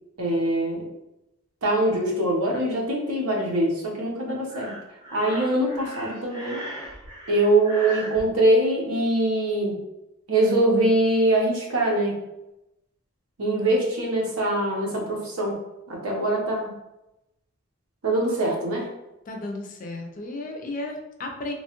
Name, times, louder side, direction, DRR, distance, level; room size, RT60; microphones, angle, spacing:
voice 1, 0.2-0.8 1.6-4.7 5.1-6.6 7.3-9.7 10.3-12.2 13.4-15.6 15.9-16.7 18.0-18.9, right 1 dB, 90° right, -1 dB, 0.8 m, -23 dB
Breathing, 4.5-8.2, equal, 20° right, 0.6 m, -38 dB
voice 2, 19.3-21.5, left 2 dB, 40° left, 3 dB, 0.4 m, -34 dB
2.9 x 2.2 x 2.9 m, 0.91 s
head